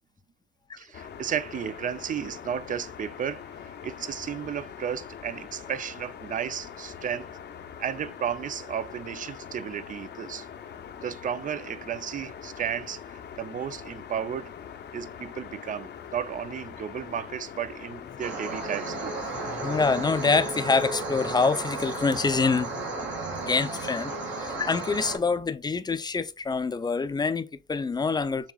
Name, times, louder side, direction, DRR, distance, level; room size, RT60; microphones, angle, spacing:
voice 1, 0.8-7.3 7.8-10.5 11.0-14.5 14.9-19.2 19.5-19.6, right 8 dB, 40° right, 0.5 m, -33 dB
sound 1, 0.9-20.5, left 8 dB, 60° left, 0.7 m, -43 dB
sound 2, 18.2-25.2, right 2 dB, 65° right, 2.0 m, -33 dB
voice 2, 19.3-22.8 23.4-28.5, left 4 dB, 20° left, 0.5 m, -26 dB
7.1 x 2.9 x 2.3 m
cardioid pair, 90°, 20 cm